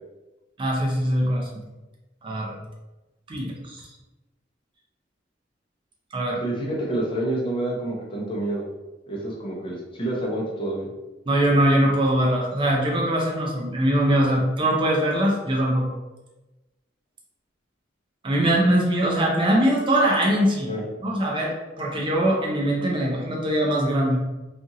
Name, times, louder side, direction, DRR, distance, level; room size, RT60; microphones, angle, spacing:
voice 1, 0.6-1.6 2.2-2.6 3.3-3.9 6.1-6.4 11.3-15.9 18.2-20.7 21.0-24.2, right 1 dB, 25° right, -1 dB, 0.4 m, -22 dB
voice 2, 6.4-8.7 9.1-10.9 20.6-20.8, right 1 dB, 30° left, -3 dB, 0.6 m, -28 dB
2.8 x 2.4 x 2.6 m, 1.1 s
head